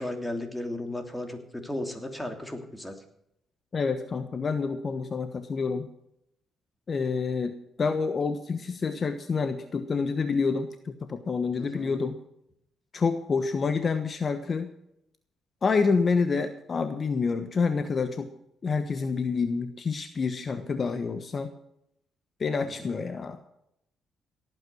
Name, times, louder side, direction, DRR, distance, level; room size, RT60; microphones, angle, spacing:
voice 1, 0.0-3.0 11.6-12.0 22.6-23.0, left 1 dB, 10° left, 5 dB, 3.0 m, -35 dB
voice 2, 3.7-5.9 6.9-12.2 12.9-14.7 15.6-18.3 18.6-21.5 22.4-23.4, left 4 dB, 40° left, 9 dB, 1.2 m, -28 dB
18.0 x 9.0 x 6.3 m, 0.77 s
cardioid pair, 90°, 0 cm